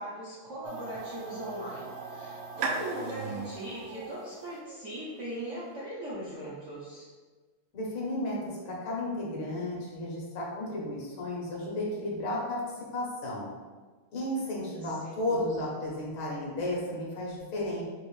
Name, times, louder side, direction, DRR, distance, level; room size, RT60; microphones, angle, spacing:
voice 1, 0.0-7.1 15.0-15.4, right 1 dB, 60° right, -8 dB, 0.7 m, -39 dB
sound 1, 0.6-5.6, right 4 dB, 75° right, 1.2 m, -39 dB
voice 2, 7.7-12.7 12.9-13.5 14.1-17.8, left 1 dB, 75° left, -3 dB, 1.9 m, -33 dB
6.3 x 2.5 x 3.2 m, 1.4 s
omnidirectional pair, 2.3 m